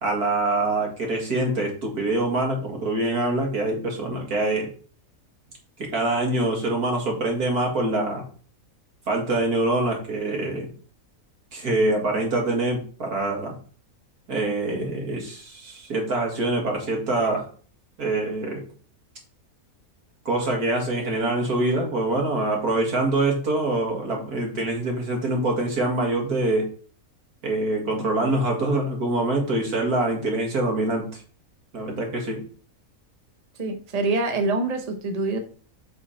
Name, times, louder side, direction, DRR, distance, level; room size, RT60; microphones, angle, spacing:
voice 1, 0.0-4.7 5.8-8.2 9.1-10.7 11.5-13.6 14.3-17.5 18.0-18.6 20.3-26.7 27.4-31.2 31.7-32.4, right 2 dB, 85° right, 1 dB, 2.6 m, -25 dB
voice 2, 33.6-35.4, right 3 dB, 30° right, 5 dB, 1.0 m, -25 dB
8.2 x 4.3 x 4.3 m, 0.41 s
omnidirectional pair, 1.5 m